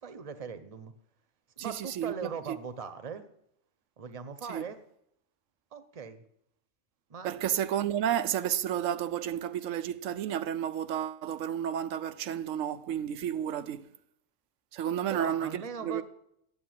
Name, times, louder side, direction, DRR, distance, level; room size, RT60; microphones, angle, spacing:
voice 1, 0.0-0.9 1.6-3.2 4.0-4.8 5.7-6.2 7.1-7.3 15.1-16.0, right 6 dB, 30° right, 0.9 m, -40 dB
voice 2, 1.6-2.6 4.5-4.7 7.2-13.9 14.7-16.0, right 10 dB, 90° right, 1.0 m, -32 dB
8.9 x 8.2 x 9.4 m
omnidirectional pair, 1.3 m